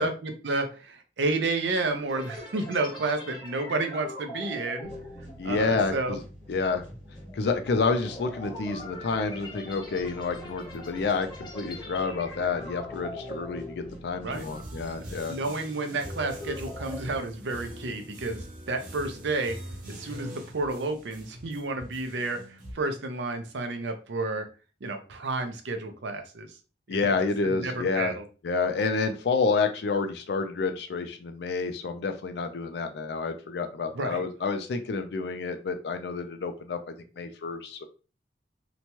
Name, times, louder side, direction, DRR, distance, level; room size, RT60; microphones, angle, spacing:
voice 1, 0.0-4.9 5.4-6.2 14.2-14.5 15.0-19.6 19.9-24.5 24.8-26.5 26.9-27.0 27.4-28.2 33.9-34.2, right 3 dB, 80° right, 7 dB, 0.6 m, -31 dB
sound 1, 2.1-14.6 14.9-15.2 15.7-17.0, left 1 dB, 25° left, 0.6 m, -42 dB
sound 2, 4.8-15.8, equal, 30° right, 1.3 m, -47 dB
voice 2, 5.4-6.2 6.5-6.8 7.3-15.4 26.9-28.1 28.4-36.8 37.2-37.8, left 4 dB, 65° left, 7 dB, 0.4 m, -29 dB
sound 3, 14.3-22.7, right 1 dB, 45° right, 0.8 m, -42 dB
2.9 x 2.2 x 2.9 m, 0.35 s
head